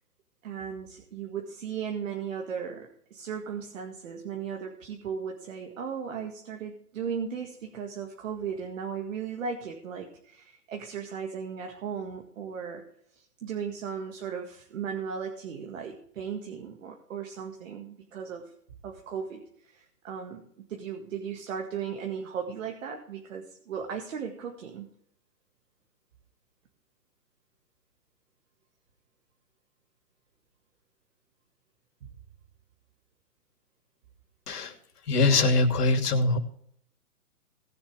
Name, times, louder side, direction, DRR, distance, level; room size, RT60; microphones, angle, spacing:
voice 1, 0.4-12.9 13.2-18.5 18.8-24.9, right 7 dB, 55° right, 2 dB, 2.0 m, -36 dB
voice 2, 35.1-36.4, left 3 dB, 75° left, 6 dB, 2.7 m, -23 dB
19.0 x 7.2 x 3.5 m, 0.68 s
hypercardioid pair, 150°, 46 cm